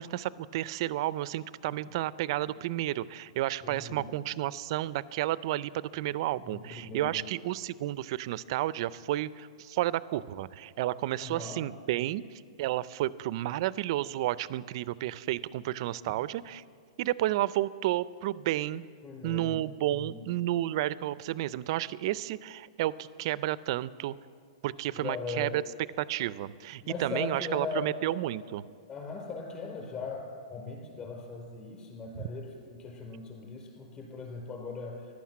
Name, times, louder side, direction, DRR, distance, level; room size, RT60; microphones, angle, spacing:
voice 1, 0.0-16.6 17.0-18.8 19.2-24.1 24.6-25.6 26.0-28.6 32.2-32.3, right 14 dB, 50° right, 18 dB, 0.4 m, -31 dB
voice 2, 3.6-4.1 6.4-7.2 11.2-11.7 19.0-19.6 19.9-20.3 24.9-25.5 26.8-27.9 28.9-35.1, left 4 dB, 25° left, 0 dB, 4.3 m, -39 dB
14.5 x 11.5 x 7.4 m, 2.1 s
hypercardioid pair, 145°, 4 cm